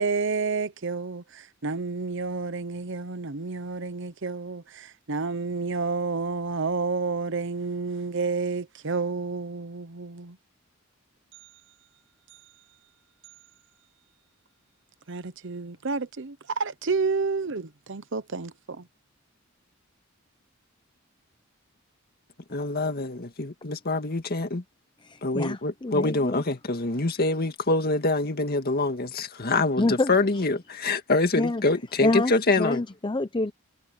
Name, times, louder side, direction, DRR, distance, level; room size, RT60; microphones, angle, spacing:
voice 1, 0.0-10.4 12.3-12.4 15.1-18.9, right 4 dB, 65° right, 0.9 m, -30 dB
voice 2, 22.5-24.6 25.2-32.8, left 2 dB, 50° left, 1.9 m, -25 dB
voice 3, 25.0-26.4 29.8-30.1 31.4-31.6 32.0-33.5, left 2 dB, 25° left, 0.7 m, -27 dB
head